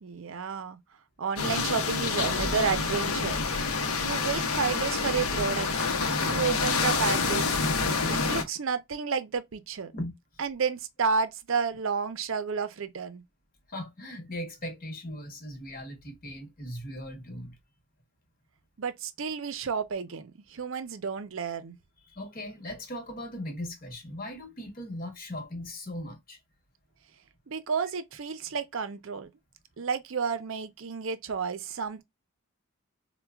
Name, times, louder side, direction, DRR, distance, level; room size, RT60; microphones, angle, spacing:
voice 1, 0.0-0.8 1.2-3.4 4.0-5.9 6.2-7.5 8.1-9.9 10.4-13.2 18.8-21.8 27.5-29.3 29.8-32.0, right 5 dB, 60° right, 0.5 m, -31 dB
sound 1, 1.4-8.4, left 4 dB, 75° left, 0.7 m, -27 dB
voice 2, 13.7-17.5 22.1-26.4, left 1 dB, 40° left, 1.1 m, -38 dB
4.4 x 2.2 x 2.2 m
head